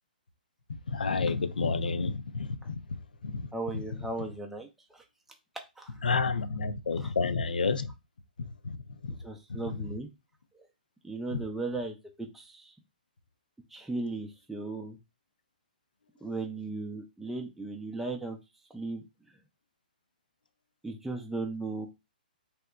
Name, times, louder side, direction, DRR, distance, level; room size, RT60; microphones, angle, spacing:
voice 1, 0.9-3.5 3.7-3.8 6.0-7.9 8.4-9.2 9.5-9.8 11.3-11.4, left 4 dB, 70° left, 0.5 m, -31 dB
voice 2, 3.5-5.0 5.8-6.0 7.0-7.1 9.2-10.1 10.5-10.7 11.0-12.7 13.7-15.0 16.2-18.4 18.7-19.3 20.8-21.9, right 3 dB, 5° right, 0.5 m, -37 dB
3.4 x 2.8 x 2.3 m
figure-of-eight pair, 120°, 5 cm